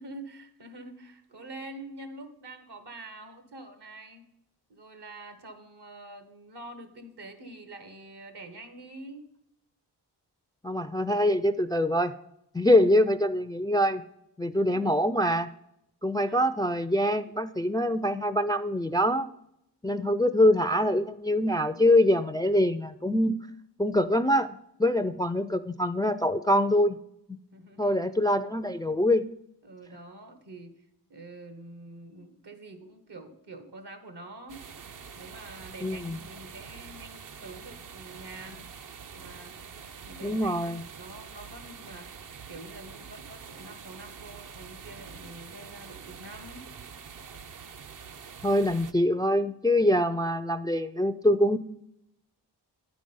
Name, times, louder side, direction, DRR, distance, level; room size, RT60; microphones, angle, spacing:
voice 1, 0.0-4.2 4.7-9.3 14.5-15.0 16.2-16.5 20.2-20.6 20.9-21.1 27.5-28.3 29.6-34.6 35.1-38.7 39.1-39.6 40.0-42.1 42.5-46.6, right 2 dB, 70° right, 8 dB, 1.4 m, -46 dB
voice 2, 10.6-12.1 12.5-14.0 14.4-15.5 16.0-19.3 19.8-23.4 23.8-27.0 27.8-29.2 35.8-36.2 40.2-40.8 48.4-51.6, left 1 dB, 10° left, 13 dB, 0.3 m, -24 dB
sound 1, 34.5-48.9, right 6 dB, 50° right, 0.6 m, -45 dB
9.9 x 5.1 x 5.4 m, 0.79 s
cardioid pair, 55°, 42 cm